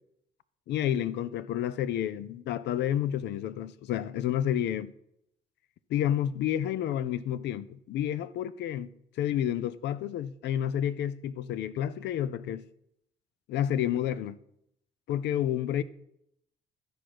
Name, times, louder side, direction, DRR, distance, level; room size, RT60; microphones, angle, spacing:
voice 1, 0.7-4.9 5.9-8.9 9.2-12.7 13.5-14.4 15.1-15.8, left 11 dB, 75° left, 0.5 m, -30 dB
13.0 x 5.0 x 6.0 m
supercardioid pair, 55°, 18 cm